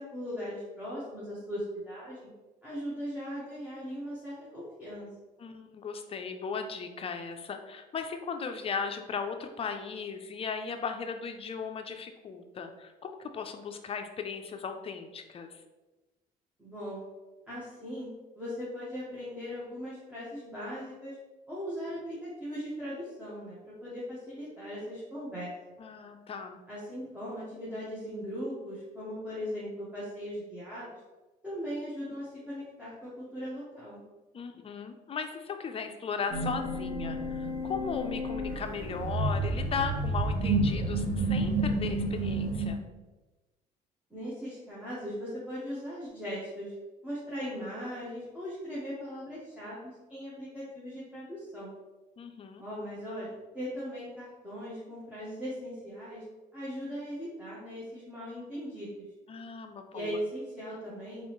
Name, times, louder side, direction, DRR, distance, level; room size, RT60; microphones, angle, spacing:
voice 1, 0.0-2.3 2.6-5.1 16.6-17.0 17.5-18.1 18.3-21.2 21.5-25.5 26.7-31.0 31.4-34.0 44.1-46.7 47.0-51.7 52.6-56.2 56.5-59.0 59.9-61.3, equal, 10° right, -9 dB, 1.4 m, -39 dB
voice 2, 5.4-15.5 25.8-26.6 34.3-42.8 52.2-52.6 59.3-60.2, left 5 dB, 35° left, 6 dB, 0.5 m, -37 dB
sound 1, 36.3-42.7, right 2 dB, 55° right, 1.3 m, -30 dB
4.0 x 3.8 x 3.1 m, 1.1 s
cardioid pair, 110°, 17 cm